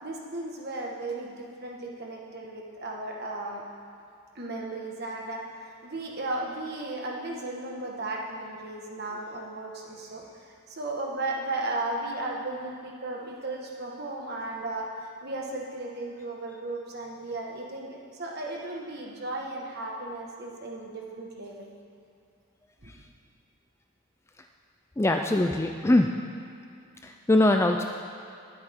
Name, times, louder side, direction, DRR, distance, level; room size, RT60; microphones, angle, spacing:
voice 1, 0.0-3.6 4.3-10.4 10.7-21.7 22.8-22.9, right 2 dB, 45° right, -1 dB, 1.5 m, -35 dB
voice 2, 25.0-26.1 27.0-27.8, left 1 dB, 10° left, 4 dB, 0.3 m, -22 dB
20.0 x 8.1 x 3.6 m, 2.4 s
head